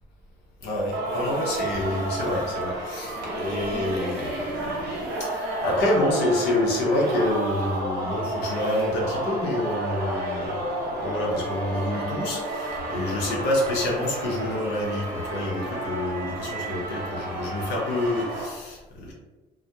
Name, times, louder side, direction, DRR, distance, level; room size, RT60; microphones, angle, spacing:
voice 1, 0.6-10.7 10.9-19.1, left 1 dB, 85° left, -2 dB, 0.7 m, -27 dB
Singing, 0.9-18.5, right 1 dB, 80° right, 0.7 m, -31 dB
2.2 x 2.1 x 2.7 m, 1.2 s
cardioid pair, 110°, 17 cm